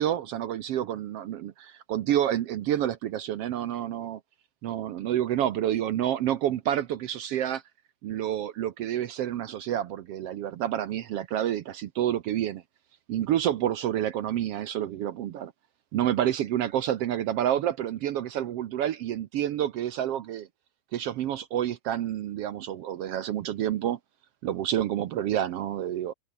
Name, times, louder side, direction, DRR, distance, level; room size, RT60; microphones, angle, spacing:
voice 1, 0.0-4.2 4.6-7.6 8.0-12.6 13.1-15.5 15.9-20.5 20.9-24.0 24.4-26.1, right 11 dB, 70° right, 1.5 m, -28 dB
omnidirectional pair, 3.7 m